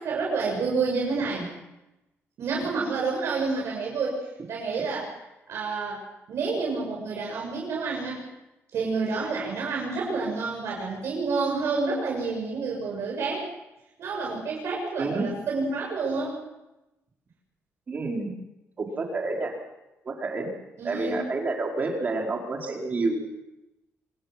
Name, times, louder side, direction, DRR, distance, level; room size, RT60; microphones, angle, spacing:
voice 1, 0.0-1.5 2.4-4.2 4.5-5.1 5.5-6.0 6.3-8.3 8.7-13.4 14.0-16.4 20.8-21.3, right 4 dB, 65° right, -2 dB, 6.9 m, -29 dB
voice 2, 17.9-18.3 18.8-19.6 20.0-20.5 20.8-23.3, right 3 dB, 35° right, 1 dB, 4.9 m, -29 dB
26.5 x 20.5 x 6.1 m, 0.95 s
cardioid pair, 140°, 5 cm